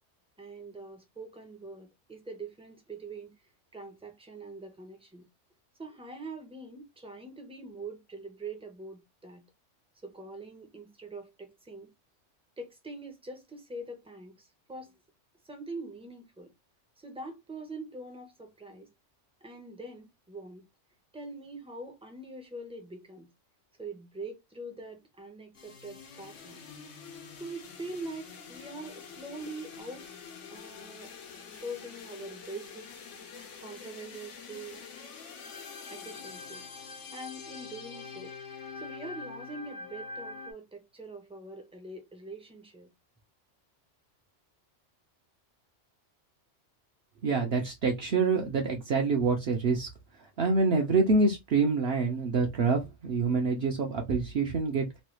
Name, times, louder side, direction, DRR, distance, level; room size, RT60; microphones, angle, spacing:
voice 1, 0.4-3.3 3.7-5.3 5.8-9.4 10.0-11.9 12.6-15.0 15.4-16.5 17.0-18.9 19.4-20.6 21.1-23.3 23.8-26.6 27.4-30.1 30.5-31.1 31.6-32.9 33.6-34.8 35.9-36.6 37.1-38.3 38.8-42.9, right 2 dB, 5° right, 0.5 m, -43 dB
sound 1, 25.5-40.5, left 5 dB, 85° left, 1.1 m, -45 dB
voice 2, 47.2-49.9 50.4-54.9, right 4 dB, 60° right, 0.9 m, -26 dB
3.1 x 2.3 x 3.0 m
omnidirectional pair, 1.2 m